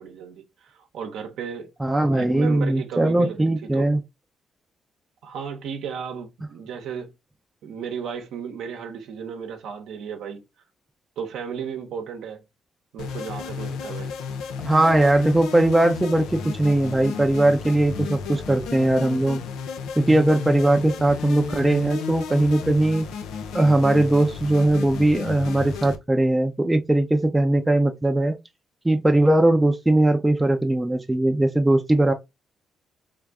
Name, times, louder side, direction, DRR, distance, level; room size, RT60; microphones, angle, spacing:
voice 1, 0.0-1.7 2.1-3.9 5.2-7.1 7.6-10.4 11.2-12.4 12.9-14.1, right 7 dB, 80° right, 0.8 m, -34 dB
voice 2, 1.8-4.0 14.6-19.4 20.0-23.1 23.5-28.4 28.8-32.1, right 1 dB, 10° right, 0.5 m, -20 dB
sound 1, 13.0-26.0, left 6 dB, 90° left, 0.5 m, -33 dB
3.5 x 2.5 x 3.3 m
cardioid pair, 90°, 0 cm